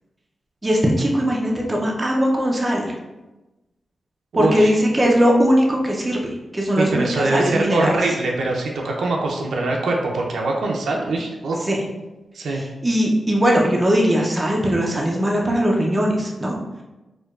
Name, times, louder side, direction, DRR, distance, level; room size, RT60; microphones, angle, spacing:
voice 1, 0.6-2.9 4.4-6.2 6.5-7.9 11.7-11.8 12.5-12.6 12.8-16.6, equal, 20° right, -2 dB, 0.4 m, -19 dB
voice 2, 4.3-4.7 6.8-11.6 12.3-12.6, right 2 dB, 90° right, -1 dB, 0.5 m, -23 dB
4.5 x 2.2 x 2.3 m, 1.1 s
wide cardioid pair, 135°, 0 cm